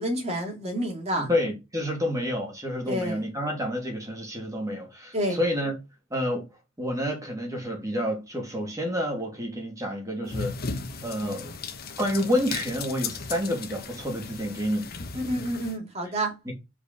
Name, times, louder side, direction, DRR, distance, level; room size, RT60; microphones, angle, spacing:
voice 1, 0.0-1.3 2.9-3.2 5.1-5.4 15.1-16.3, right 1 dB, 30° right, 2.6 m, -29 dB
voice 2, 1.2-5.7 6.1-6.4 6.8-10.5 11.0-11.5 12.0-14.9 16.5-16.6, equal, 15° right, 2.9 m, -29 dB
sound 1, 10.3-15.8, left 4 dB, 50° left, 1.2 m, -36 dB
5.2 x 5.1 x 5.2 m
head